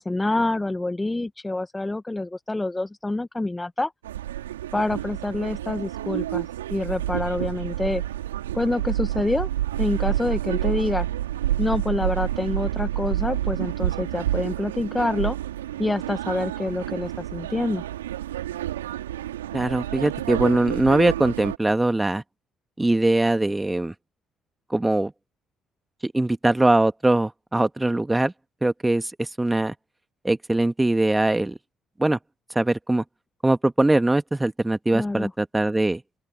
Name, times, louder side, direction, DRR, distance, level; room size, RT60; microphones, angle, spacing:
voice 1, 0.0-3.9 4.7-8.0 8.5-9.5 9.8-11.1 11.6-15.4 15.8-17.8 34.9-35.3, left 2 dB, 15° left, 1.7 m, -26 dB
sound 1, 4.0-21.6, right 13 dB, 80° right, 3.4 m, -29 dB
voice 2, 19.5-22.2 22.8-23.9 24.7-25.1 26.0-28.3 28.6-29.7 30.2-31.6 32.0-32.2 32.6-33.0 33.4-36.0, right 2 dB, 15° right, 2.2 m, -21 dB
open air
figure-of-eight pair, 45°, 0 cm